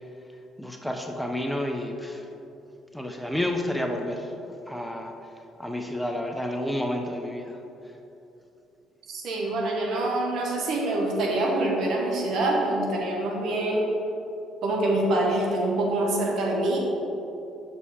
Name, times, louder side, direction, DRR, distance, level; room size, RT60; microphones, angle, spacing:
voice 1, 0.6-2.3 2.9-4.3 4.7-5.1 5.6-7.6, left 1 dB, 5° left, 3 dB, 0.7 m, -30 dB
voice 2, 9.1-13.9 14.6-16.8, right 1 dB, 65° right, -1 dB, 1.3 m, -25 dB
6.1 x 5.6 x 4.2 m, 2.9 s
hypercardioid pair, 60°, 0 cm